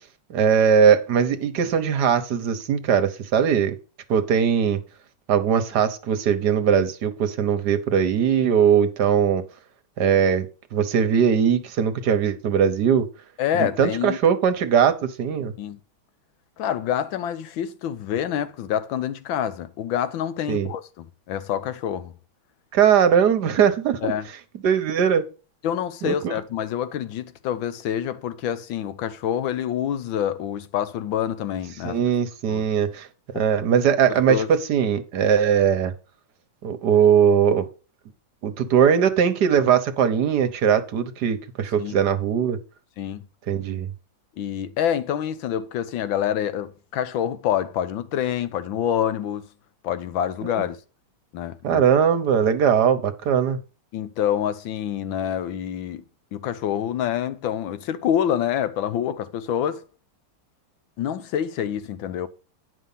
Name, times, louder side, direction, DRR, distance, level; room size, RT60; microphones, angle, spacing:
voice 1, 0.3-3.8 4.1-4.8 5.3-9.4 10.0-13.1 13.5-15.5 20.5-20.7 22.7-24.1 24.6-25.2 26.0-26.3 31.8-33.1 33.3-35.9 36.6-37.7 38.4-42.6 43.5-43.9 50.4-50.7 51.6-53.6, right 7 dB, 60° right, 1.4 m, -20 dB
voice 2, 13.4-14.2 15.6-15.8 16.6-22.1 24.0-24.2 25.6-32.0 32.5-32.6 34.3-34.5 41.8-42.0 43.0-43.3 44.4-49.4 49.8-50.8 51.3-51.8 53.9-56.0 56.3-59.8 61.0-62.3, left 10 dB, 75° left, 1.4 m, -27 dB
9.7 x 5.5 x 5.6 m
omnidirectional pair, 2.2 m